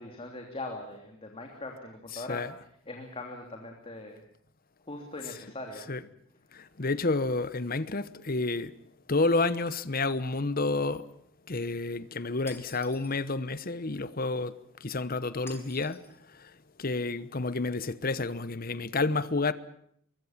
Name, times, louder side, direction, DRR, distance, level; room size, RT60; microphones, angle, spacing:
voice 1, 0.0-2.4 2.9-4.2 4.9-5.9, left 2 dB, 25° left, 3.0 m, -41 dB
voice 2, 2.1-2.5 5.9-6.0 6.5-8.7 9.1-11.0 11.5-16.0 16.4-16.5 16.8-19.5, left 3 dB, 45° left, 1.1 m, -30 dB
Shatter, 12.5-13.2 15.5-16.2, left 2 dB, 10° left, 4.0 m, -50 dB
24.0 x 22.5 x 7.3 m
head